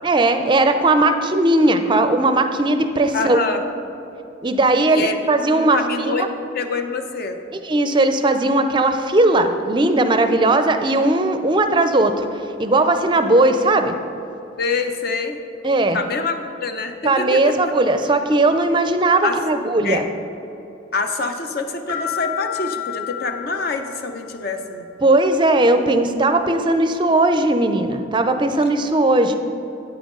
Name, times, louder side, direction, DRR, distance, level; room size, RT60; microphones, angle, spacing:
voice 1, 0.0-3.4 4.4-6.3 7.6-13.9 15.6-16.0 17.0-20.0 25.0-29.4, right 2 dB, 25° right, 8 dB, 0.5 m, -18 dB
voice 2, 3.1-3.6 4.9-5.2 5.5-6.3 6.5-7.4 14.6-15.4 15.9-17.5 19.2-19.4 19.8-20.1 20.9-24.9, left 4 dB, 50° left, 6 dB, 0.6 m, -25 dB
sound 1, 21.9-24.5, left 11 dB, 70° left, 1.6 m, -30 dB
9.3 x 8.7 x 3.7 m, 2.9 s
head